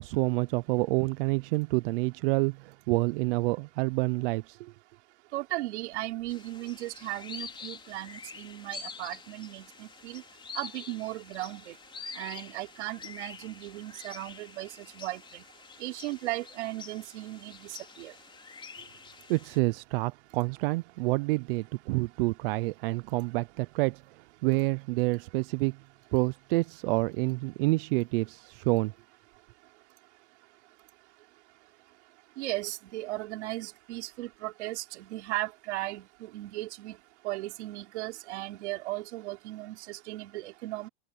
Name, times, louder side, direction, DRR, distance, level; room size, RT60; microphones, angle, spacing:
voice 1, 0.0-4.7 19.3-24.0 24.4-25.8 26.1-28.9, right 24 dB, 55° right, 0.5 m, -28 dB
voice 2, 5.3-10.2 10.6-11.8 12.1-15.4 15.8-18.1 32.4-37.0 37.2-40.9, right 17 dB, 75° right, 3.7 m, -36 dB
sound 1, 6.3-19.6, left 5 dB, 15° left, 4.7 m, -46 dB
open air
supercardioid pair, 165°, 34 cm